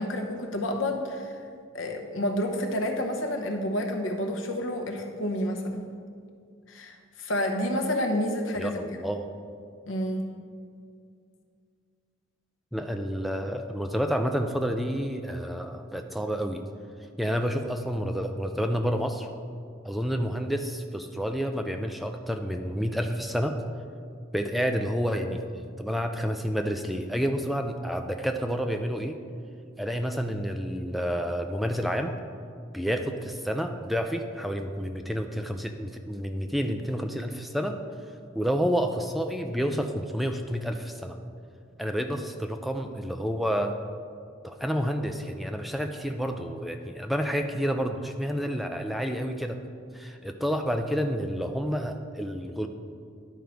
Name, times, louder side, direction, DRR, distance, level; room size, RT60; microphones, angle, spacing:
voice 1, 0.0-1.3 1.7-5.8 6.7-8.8 9.9-10.3, left 1 dB, 80° left, 3 dB, 0.9 m, -29 dB
voice 2, 8.6-9.3 12.7-16.6 17.2-19.3 19.8-23.6 24.3-29.2 29.8-32.1 32.7-37.8 38.3-41.2 41.8-43.8 44.4-49.6 49.9-52.7, equal, ahead, 5 dB, 0.3 m, -29 dB
11.0 x 4.6 x 5.1 m, 2.3 s
head